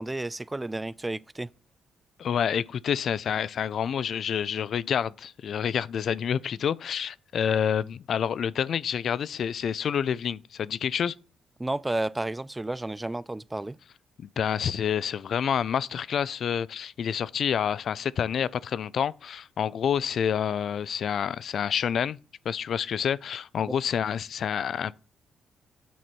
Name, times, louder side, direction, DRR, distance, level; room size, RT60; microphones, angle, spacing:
voice 1, 0.0-1.5 11.6-13.8, right 2 dB, 15° right, 0.3 m, -31 dB
voice 2, 2.2-11.1 14.2-22.2 22.5-24.9, left 8 dB, 60° left, 0.4 m, -28 dB
9.2 x 4.2 x 6.1 m
cardioid pair, 90°, 0 cm